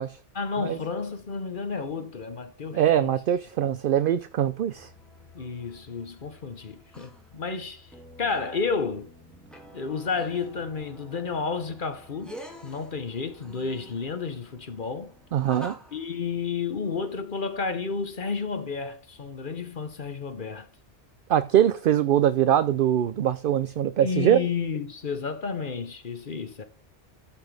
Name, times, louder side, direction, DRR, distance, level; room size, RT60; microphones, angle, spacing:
voice 1, 0.3-3.1 5.3-7.9 8.2-9.1 9.7-12.3 12.6-15.1 15.9-20.7 24.0-26.6, left 5 dB, 45° left, 1.1 m, -31 dB
voice 2, 2.7-4.9 15.3-15.8 21.3-24.4, right 10 dB, 60° right, 0.6 m, -22 dB
sound 1, 4.7-16.5, equal, ahead, 2.3 m, -48 dB
13.0 x 5.9 x 3.4 m
omnidirectional pair, 1.2 m